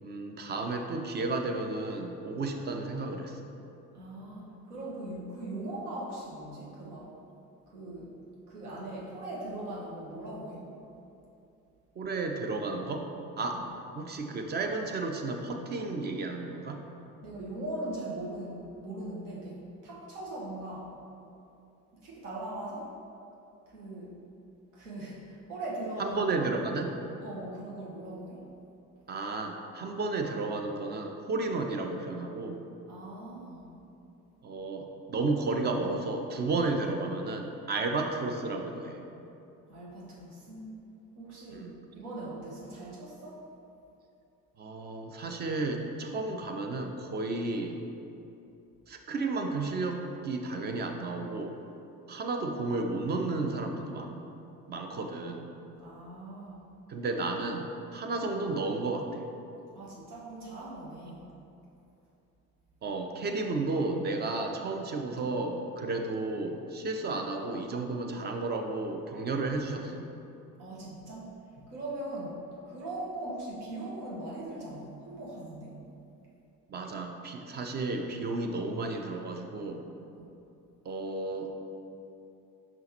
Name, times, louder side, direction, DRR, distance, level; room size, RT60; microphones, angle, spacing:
voice 1, 0.0-3.4 12.0-13.1 13.4-13.6 14.0-16.8 26.0-27.0 29.1-32.6 34.4-39.0 41.5-41.7 44.6-47.8 48.9-51.6 52.1-54.2 54.7-55.5 56.9-59.3 62.8-70.0 76.7-79.8 80.8-81.6, right 3 dB, 25° right, 3 dB, 0.4 m, -32 dB
voice 2, 3.9-7.1 7.7-8.1 8.4-10.7 13.5-13.6 17.2-20.9 21.9-22.9 23.7-24.2 24.7-26.4 27.2-28.4 32.9-33.8 39.7-40.7 41.1-43.4 55.8-56.6 59.7-61.3 70.6-71.3 71.7-72.4 72.6-75.8 80.2-80.3, right 1 dB, 70° right, -5 dB, 1.3 m, -40 dB
5.8 x 5.6 x 2.9 m, 2.8 s
figure-of-eight pair, 55°, 47 cm